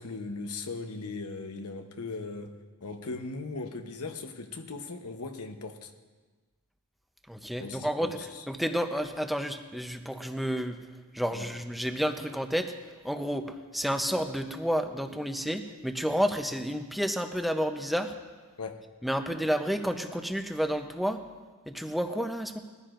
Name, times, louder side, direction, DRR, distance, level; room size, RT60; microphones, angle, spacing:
voice 1, 0.0-5.9 7.6-8.4 11.3-11.5 18.6-18.9, left 3 dB, 85° left, 1.0 m, -38 dB
voice 2, 7.3-8.2 8.5-10.8 11.1-12.7 13.0-18.1 19.0-21.2 21.7-22.6, equal, ahead, 0.7 m, -30 dB
21.0 x 14.5 x 2.6 m
head